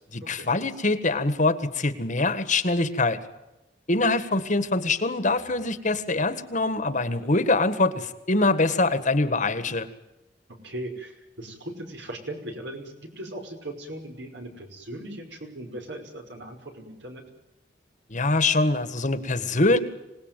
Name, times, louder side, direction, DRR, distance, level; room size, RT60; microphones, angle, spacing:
voice 1, 0.1-3.2 3.9-9.9 18.1-19.8, left 2 dB, 45° left, 12 dB, 1.8 m, -24 dB
voice 2, 10.6-17.2, right 1 dB, 70° right, 4 dB, 5.5 m, -38 dB
26.0 x 19.0 x 9.3 m, 0.96 s
head